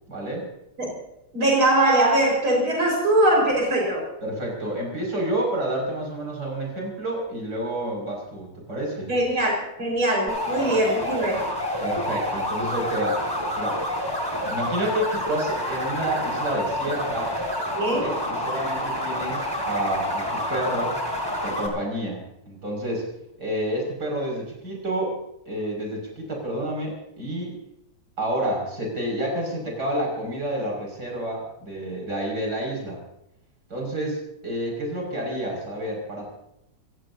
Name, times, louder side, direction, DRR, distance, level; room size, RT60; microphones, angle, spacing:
voice 1, 0.1-0.5 4.2-9.1 11.8-13.2 13.6-13.8 14.5-17.3 17.9-20.9 21.4-23.1 23.4-25.2 25.4-27.6 28.2-33.0 33.7-36.3, right 1 dB, 50° right, 0 dB, 6.6 m, -29 dB
voice 2, 1.3-4.0 9.1-9.5 9.8-11.4 17.8-18.1, right 1 dB, 85° right, -1 dB, 5.9 m, -21 dB
sound 1, 10.3-21.7, left 1 dB, 10° left, 4.1 m, -28 dB
29.0 x 16.0 x 2.8 m, 0.84 s
omnidirectional pair, 2.2 m